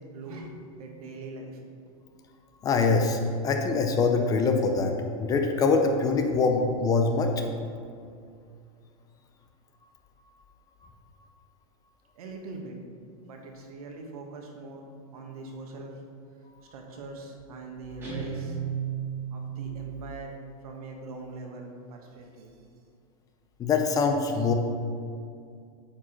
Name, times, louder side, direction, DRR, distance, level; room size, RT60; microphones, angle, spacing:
voice 1, 0.1-1.6 12.2-12.8 13.2-16.0 16.7-18.6 19.3-20.3 20.6-22.5, right 3 dB, 80° right, 2 dB, 1.5 m, -42 dB
voice 2, 2.6-4.9 5.2-7.3 23.6-24.5, left 4 dB, 20° left, 4 dB, 0.5 m, -24 dB
Guitar, 18.0-19.7, right 7 dB, 15° right, 1.7 m, -33 dB
8.5 x 4.8 x 4.4 m, 2.3 s
supercardioid pair, 155°, 19 cm